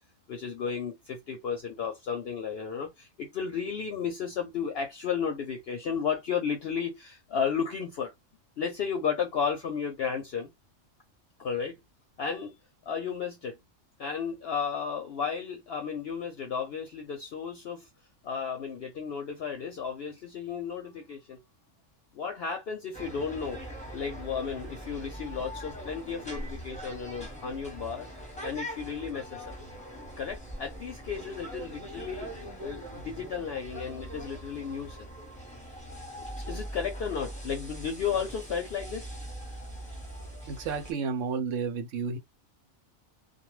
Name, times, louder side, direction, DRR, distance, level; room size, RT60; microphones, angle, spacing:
voice 1, 0.3-8.1 8.6-10.5 11.4-11.8 12.2-12.5 12.9-13.6 14.0-17.9 18.2-21.4 22.1-28.1 28.4-29.5 30.2-35.1 36.5-39.1, left 6 dB, 60° left, 0.7 m, -33 dB
sound 1, 22.9-40.9, equal, 5° left, 0.8 m, -42 dB
voice 2, 40.5-42.2, right 5 dB, 75° right, 0.9 m, -31 dB
2.3 x 2.3 x 3.0 m
omnidirectional pair, 1.3 m